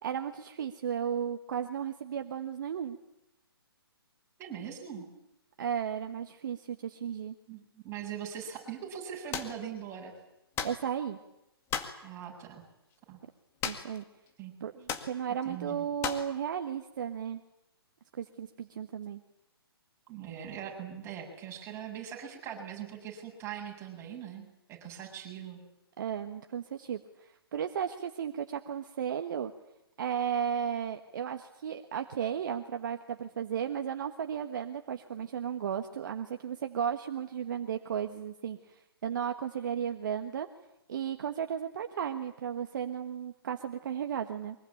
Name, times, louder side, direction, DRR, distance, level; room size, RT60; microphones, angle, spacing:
voice 1, 0.0-3.0 5.6-7.3 10.6-11.2 13.6-14.0 14.6-17.4 18.2-19.2 26.0-27.0 27.5-29.5 30.0-40.5 40.9-44.5, right 8 dB, 50° right, 6 dB, 1.5 m, -34 dB
voice 2, 4.4-5.1 7.5-10.1 12.0-12.6 13.1-13.2 14.4-14.5 15.4-15.9 20.1-25.6, right 9 dB, 20° right, 0 dB, 7.5 m, -41 dB
sound 1, 9.3-9.6 10.6-10.8 11.7-12.0 13.6-14.0 14.3-14.4 14.9-15.1 16.0-16.3, left 8 dB, 20° left, 2.0 m, -34 dB
24.0 x 23.0 x 8.8 m, 0.87 s
figure-of-eight pair, 130°, 13 cm